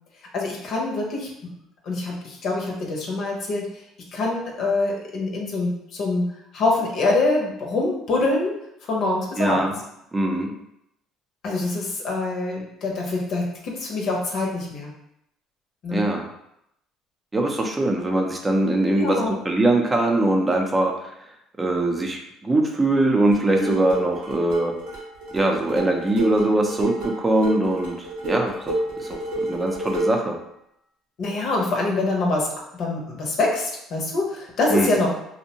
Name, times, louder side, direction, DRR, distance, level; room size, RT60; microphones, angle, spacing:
voice 1, 0.3-1.3 1.9-3.7 4.1-6.2 6.5-8.5 8.9-9.6 11.4-14.9 15.8-16.1 18.9-19.4 23.6-23.8 28.3-28.4 31.2-32.5 32.8-35.1, left 2 dB, 60° left, -1 dB, 0.7 m, -25 dB
voice 2, 9.4-9.7 10.1-10.5 15.9-16.2 17.3-20.9 21.6-24.7 25.3-30.4 34.7-34.9, right 2 dB, 20° right, 2 dB, 0.5 m, -22 dB
sound 1, 23.3-30.3, right 1 dB, 85° right, 1.0 m, -30 dB
2.6 x 2.1 x 2.8 m, 0.79 s
supercardioid pair, 85°, 0 cm